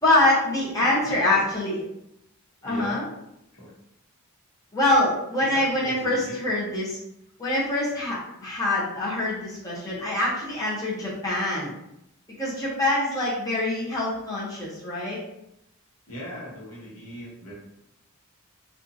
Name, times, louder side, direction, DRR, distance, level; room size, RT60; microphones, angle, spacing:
voice 1, 0.0-1.8 2.6-3.0 4.7-7.0 7.4-11.7 12.4-15.2, left 1 dB, 15° left, -7 dB, 0.7 m, -24 dB
voice 2, 0.6-1.4 2.6-3.0 3.5-3.7 5.5-6.3 16.1-17.5, left 1 dB, 85° left, -5 dB, 1.0 m, -39 dB
2.6 x 2.4 x 2.5 m, 0.82 s
head